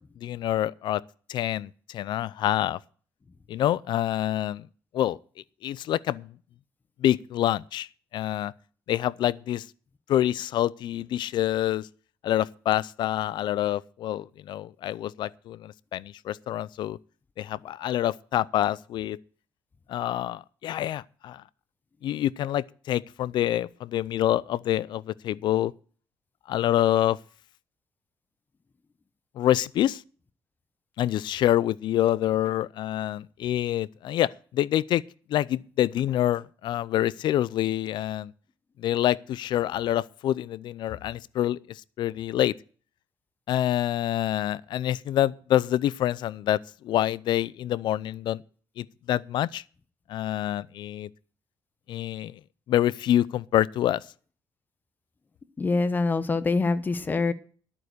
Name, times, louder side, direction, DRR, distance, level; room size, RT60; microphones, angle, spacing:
voice 1, 0.2-1.0 1.3-2.8 3.5-4.6 4.9-5.2 5.6-6.3 7.0-7.9 8.1-8.5 8.9-9.6 10.1-11.9 12.2-17.0 17.4-19.2 19.9-21.4 22.0-25.7 26.5-27.2 29.4-30.0 31.0-35.0 35.3-38.3 38.8-41.6 42.0-42.5 43.5-46.6 46.8-48.4 48.8-49.6 50.1-51.1 51.9-52.3 52.7-54.0, left 12 dB, 65° left, 0.5 m, -26 dB
voice 2, 55.6-57.3, left 3 dB, 20° left, 0.9 m, -25 dB
11.0 x 9.0 x 6.6 m
cardioid pair, 145°, 8 cm